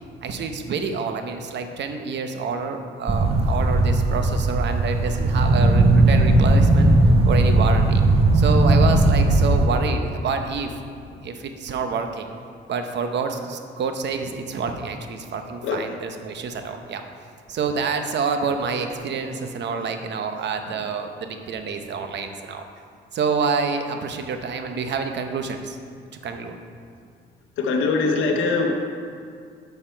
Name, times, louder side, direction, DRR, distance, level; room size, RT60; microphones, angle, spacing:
voice 1, 0.2-6.9 7.2-8.0 8.3-10.7 11.2-12.3 12.7-17.0 17.5-22.6 23.1-25.8 26.2-26.6, right 5 dB, 60° right, 6 dB, 0.9 m, -27 dB
sound 1, 3.1-9.7, right 2 dB, 30° right, 0.9 m, -17 dB
voice 2, 27.6-28.9, left 3 dB, 85° left, 2 dB, 0.9 m, -22 dB
8.9 x 5.9 x 4.5 m, 2.3 s
cardioid pair, 90°, 20 cm